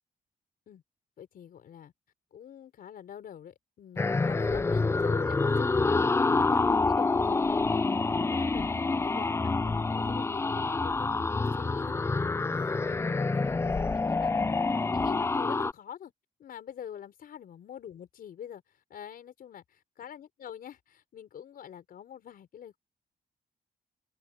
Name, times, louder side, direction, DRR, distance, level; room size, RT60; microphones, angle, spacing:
voice 1, 1.2-1.9 2.3-6.1 6.4-14.6 14.9-16.1 16.4-22.8, left 9 dB, 75° left, 5.1 m, -46 dB
sound 1, 4.0-15.7, left 3 dB, 15° left, 0.4 m, -27 dB
open air
cardioid pair, 110°, 15 cm